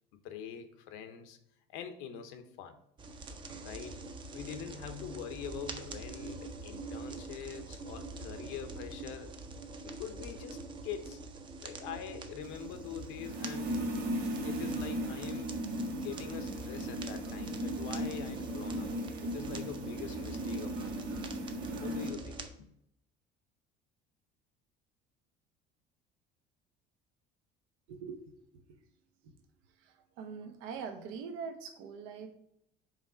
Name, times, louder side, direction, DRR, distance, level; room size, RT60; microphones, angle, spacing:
voice 1, 0.2-1.4 1.7-2.8 3.6-4.0 4.3-9.3 9.8-11.2 11.6-13.8 14.4-15.5 15.9-18.9 19.2-21.2 21.7-22.7, left 8 dB, 80° left, 8 dB, 0.9 m, -44 dB
sound 1, 3.0-22.5, right 3 dB, 25° right, 0.6 m, -45 dB
sound 2, 12.4-22.1, right 1 dB, 50° right, 1.6 m, -37 dB
voice 2, 27.9-28.2 29.8-32.3, right 6 dB, 90° right, 6 dB, 1.0 m, -43 dB
5.1 x 3.6 x 5.5 m, 0.74 s
cardioid pair, 165°, 20 cm